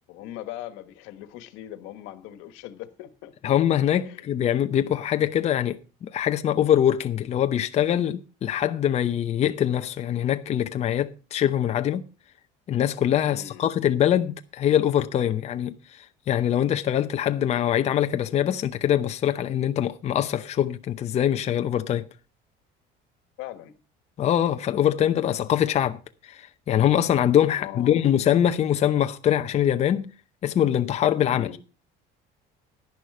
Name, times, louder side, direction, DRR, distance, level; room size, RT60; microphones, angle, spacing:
voice 1, 0.1-3.3 4.0-4.3 13.2-13.7 23.4-23.8 27.5-28.1 31.3-31.6, left 13 dB, 85° left, 1.4 m, -40 dB
voice 2, 3.4-12.1 12.7-22.1 24.2-26.0 26.2-30.1 30.4-31.5, left 10 dB, 35° left, 0.7 m, -23 dB
11.0 x 11.0 x 4.8 m
cardioid pair, 150°, 19 cm